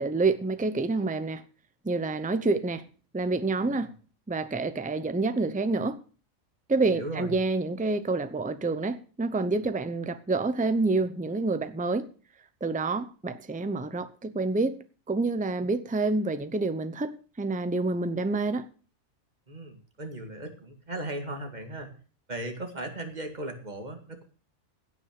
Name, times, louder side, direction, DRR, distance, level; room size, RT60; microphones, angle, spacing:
voice 1, 0.0-1.4 1.8-2.8 3.1-3.9 4.3-6.0 6.7-12.1 12.6-14.8 15.1-18.7, right 3 dB, 10° right, 0.6 m, -28 dB
voice 2, 3.6-3.9 6.8-7.3 19.5-21.9 22.3-24.2, right 1 dB, 30° right, 2.2 m, -37 dB
16.5 x 6.2 x 6.7 m
omnidirectional pair, 1.4 m